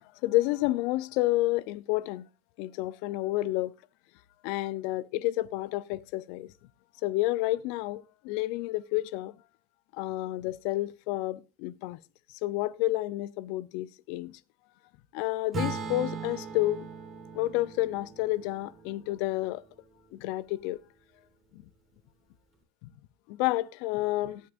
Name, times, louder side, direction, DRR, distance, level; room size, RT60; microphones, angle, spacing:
voice 1, 0.2-2.2 2.6-3.7 4.4-6.5 7.0-9.3 10.0-12.0 12.4-14.3 15.1-16.9 17.3-19.6 20.2-20.8 23.4-24.4, left 17 dB, 70° left, 0.6 m, -30 dB
Acoustic guitar / Strum, 15.5-19.8, right 4 dB, 35° right, 3.7 m, -39 dB
18.0 x 8.3 x 2.5 m
hypercardioid pair, 85°, 0 cm